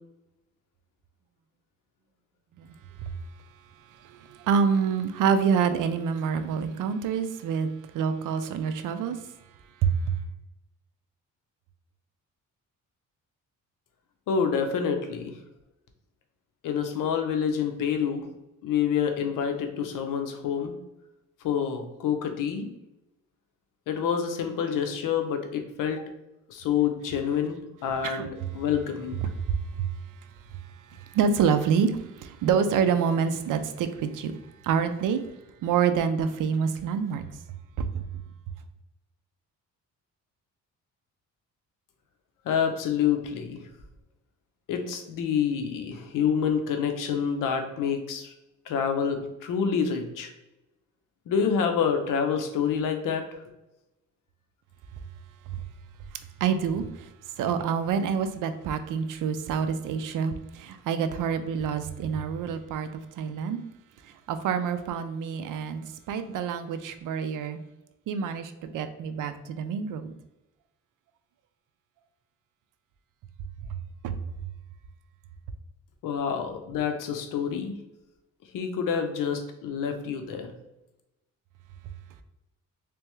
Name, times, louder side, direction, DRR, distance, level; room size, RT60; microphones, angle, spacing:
voice 1, 3.8-9.3 9.8-10.2 28.0-28.3 29.2-30.0 30.4-34.3 34.6-35.2 35.6-37.2 37.8-38.0 55.5-55.6 56.1-63.6 64.0-67.6 68.1-70.2 74.0-74.2, right 6 dB, 80° right, 0.5 m, -27 dB
voice 2, 14.3-15.4 16.6-18.3 18.6-20.7 21.4-22.7 23.9-26.0 26.5-29.2 42.4-43.6 44.7-48.3 48.7-50.3 51.3-53.4 76.0-77.7 78.5-80.5, left 7 dB, 85° left, 0.7 m, -27 dB
3.4 x 3.4 x 3.1 m
cardioid pair, 115°, 31 cm